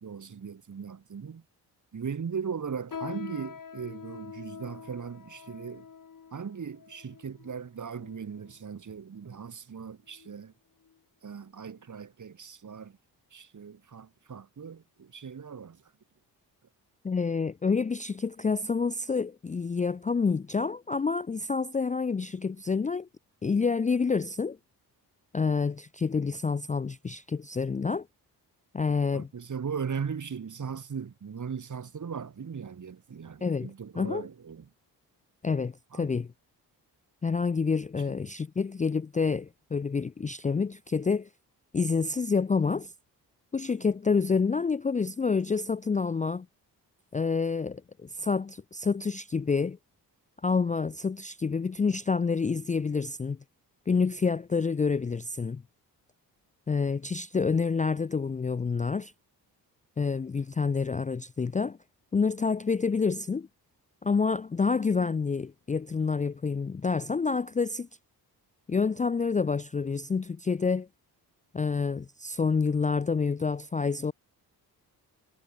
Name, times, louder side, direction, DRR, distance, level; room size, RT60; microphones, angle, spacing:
voice 1, 0.0-1.4 1.9-5.9 6.3-10.5 11.2-13.0 13.3-15.8 29.1-34.7 35.9-36.2 38.0-38.1, right 6 dB, 45° right, 2.7 m, -38 dB
sound 1, 2.9-8.6 9.2-9.4 10.1-10.4 10.8-11.0 11.7-11.8, left 6 dB, 50° left, 4.3 m, -45 dB
voice 2, 17.0-23.1 23.4-24.6 25.3-28.1 28.7-29.3 33.4-34.3 35.4-36.3 37.2-41.3 41.7-42.9 43.5-46.5 47.1-49.8 50.4-53.4 53.9-55.6 56.7-59.1 60.0-61.8 62.1-63.5 64.0-67.9 68.7-70.9 71.5-74.1, left 5 dB, 20° left, 0.5 m, -28 dB
cardioid pair, 65°, 41 cm